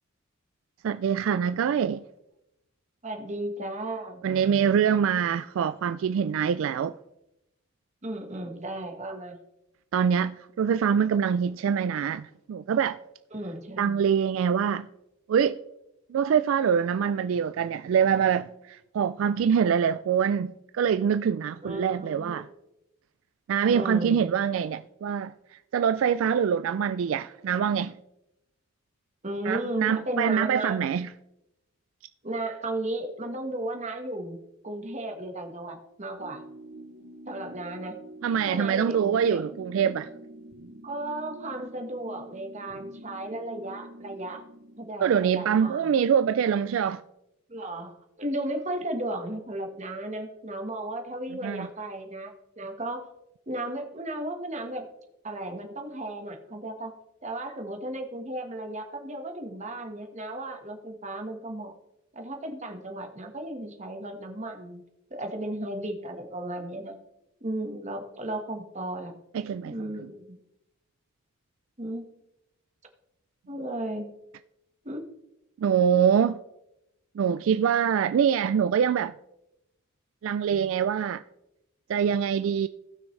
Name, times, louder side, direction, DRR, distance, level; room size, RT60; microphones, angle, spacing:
voice 1, 0.8-2.0 4.2-6.9 9.9-13.0 13.8-14.9 15.3-15.6 16.1-22.4 23.5-25.3 25.7-28.0 29.5-31.1 38.2-40.1 45.0-47.0 51.4-51.7 69.3-69.7 75.6-76.4 77.2-79.1 80.2-81.2 81.9-82.7, right 7 dB, 70° right, 0.3 m, -24 dB
voice 2, 3.0-4.3 8.0-9.4 13.3-14.0 21.6-22.5 23.7-24.2 29.2-30.8 32.2-34.4 34.6-36.4 37.3-38.0 38.5-39.4 40.8-44.4 44.8-45.9 47.5-53.0 53.5-54.9 55.2-56.9 57.2-61.7 62.1-64.8 65.1-66.9 67.4-69.1 69.6-70.4 71.8-72.1 73.5-74.1 74.8-75.1, right 1 dB, 35° right, 1.3 m, -35 dB
sound 1, 36.2-44.9, right 1 dB, 85° right, 0.9 m, -46 dB
17.5 x 6.2 x 3.2 m
head